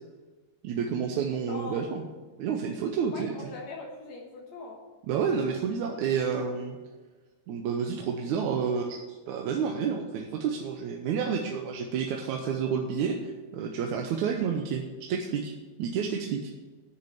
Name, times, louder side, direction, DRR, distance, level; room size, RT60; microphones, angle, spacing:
voice 1, 0.6-2.0 2.4-3.4 5.1-6.8 7.5-15.5 15.8-16.5, right 6 dB, 80° right, 2 dB, 2.3 m, -30 dB
voice 2, 1.5-1.8 3.1-4.8, left 3 dB, 65° left, -1 dB, 2.6 m, -41 dB
9.8 x 6.5 x 8.6 m, 1.3 s
omnidirectional pair, 3.4 m